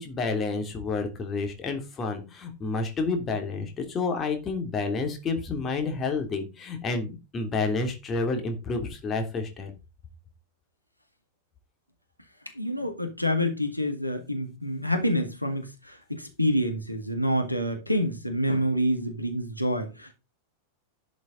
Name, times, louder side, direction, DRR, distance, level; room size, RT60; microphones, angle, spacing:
voice 1, 0.0-9.7, left 3 dB, 25° left, 3.0 m, -29 dB
voice 2, 12.6-20.2, equal, 90° left, 1.9 m, -27 dB
11.0 x 7.3 x 4.0 m
figure-of-eight pair, 90°, 0 cm